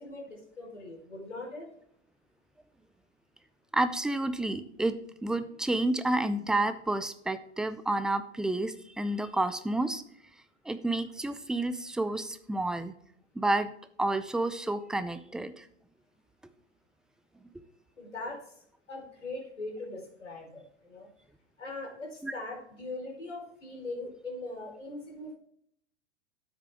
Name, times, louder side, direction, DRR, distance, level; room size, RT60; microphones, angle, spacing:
voice 1, 0.0-1.7 18.0-18.5 18.9-21.1 21.6-25.4, left 2 dB, 80° left, 1 dB, 4.5 m, -41 dB
voice 2, 3.7-5.0 5.2-10.0 10.7-12.9 13.4-13.7 14.0-15.7 22.2-22.3, right 2 dB, ahead, 12 dB, 0.5 m, -30 dB
13.0 x 9.4 x 3.6 m, 0.67 s
figure-of-eight pair, 100°, 36 cm